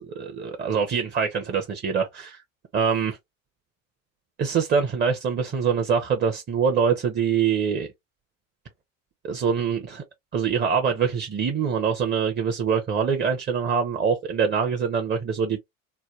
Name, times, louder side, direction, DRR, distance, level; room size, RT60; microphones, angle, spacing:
voice 1, 0.0-2.4 2.7-3.2 4.4-7.9 9.2-10.0 10.3-15.6, right 6 dB, 25° right, 0.7 m, -24 dB
3.3 x 2.2 x 2.8 m
hypercardioid pair, 70°, 41 cm